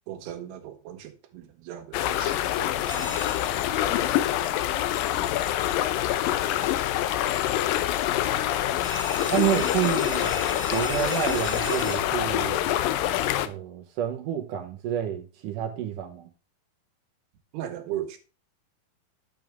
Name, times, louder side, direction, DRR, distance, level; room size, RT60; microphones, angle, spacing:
voice 1, 0.1-3.2 4.0-4.1 17.5-18.2, right 11 dB, 85° right, 3.4 m, -38 dB
sound 1, 1.9-13.5, left 12 dB, 75° left, 2.2 m, -26 dB
sound 2, 2.9-3.7 8.8-12.0, right 2 dB, 10° right, 0.8 m, -38 dB
voice 2, 9.3-10.4 10.7-12.7 13.4-16.3, right 10 dB, 70° right, 2.2 m, -29 dB
10.5 x 7.0 x 3.5 m
omnidirectional pair, 4.6 m